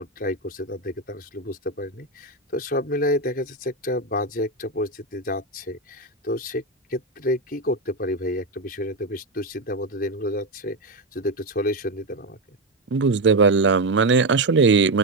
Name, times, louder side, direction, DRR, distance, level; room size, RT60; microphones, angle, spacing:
voice 1, 0.0-6.6 6.9-12.4, left 1 dB, 55° left, 5.3 m, -29 dB
voice 2, 12.9-15.0, right 4 dB, 85° right, 0.6 m, -18 dB
open air
head